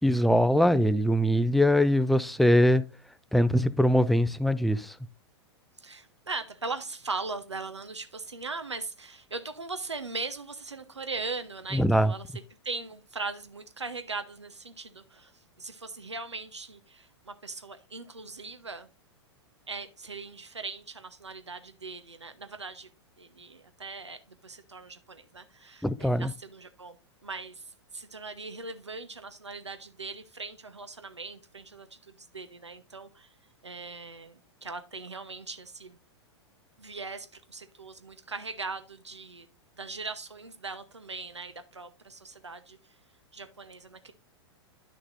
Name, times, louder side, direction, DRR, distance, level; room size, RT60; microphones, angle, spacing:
voice 1, 0.0-2.8 3.3-4.9 11.7-12.1 25.8-26.3, equal, ahead, 0.4 m, -22 dB
voice 2, 5.8-12.3 12.6-18.9 19.7-22.9 23.2-27.0 27.2-33.3 33.6-36.0 36.8-39.5 39.8-43.0 43.3-44.1, right 3 dB, 80° right, 1.0 m, -40 dB
11.0 x 6.6 x 2.6 m
figure-of-eight pair, 100°, 14 cm